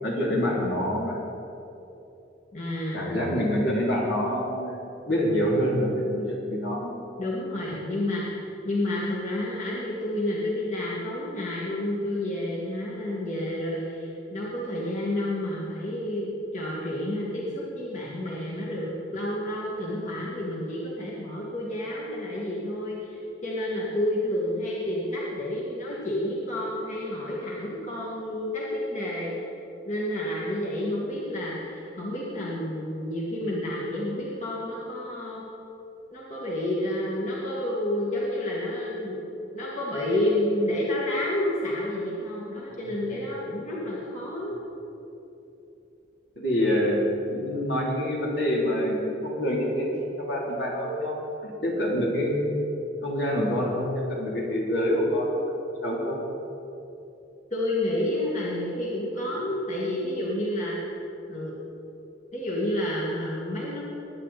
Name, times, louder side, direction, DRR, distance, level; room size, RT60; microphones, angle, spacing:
voice 1, 0.0-1.2 2.9-4.8 5.0-6.9 46.3-47.0 47.3-51.2 51.6-52.5 53.0-55.6 55.8-56.2, equal, 65° left, -4 dB, 3.2 m, -26 dB
voice 2, 2.5-3.0 7.2-29.3 29.9-35.4 36.1-44.6 57.5-60.8 61.3-61.6 62.3-63.8, left 1 dB, 40° left, -6 dB, 2.1 m, -30 dB
21.5 x 9.8 x 4.2 m, 2.8 s
head